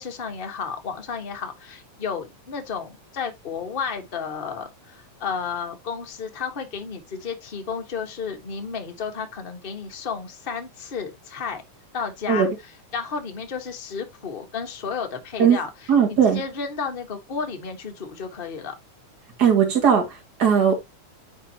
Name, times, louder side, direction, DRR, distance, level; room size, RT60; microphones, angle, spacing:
voice 1, 0.0-11.6 11.9-12.5 12.9-18.7, left 6 dB, 35° left, 0.8 m, -32 dB
voice 2, 15.9-16.4 19.4-20.8, right 7 dB, 35° right, 2.5 m, -18 dB
10.0 x 4.3 x 2.9 m
omnidirectional pair, 3.3 m